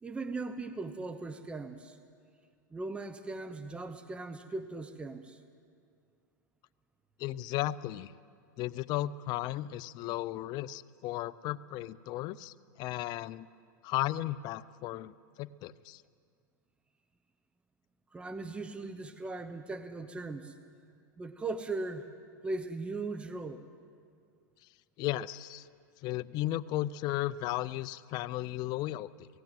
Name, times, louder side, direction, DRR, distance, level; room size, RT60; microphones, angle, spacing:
voice 1, 0.0-2.0 2.7-5.4 18.1-20.6 21.2-22.1 22.4-23.7, right 3 dB, 10° right, 10 dB, 0.9 m, -38 dB
voice 2, 7.2-8.1 8.6-13.5 13.8-16.0 25.0-25.7 26.0-29.3, left 15 dB, 40° left, 17 dB, 0.6 m, -35 dB
18.0 x 16.5 x 9.2 m, 2.2 s
hypercardioid pair, 125°, 10 cm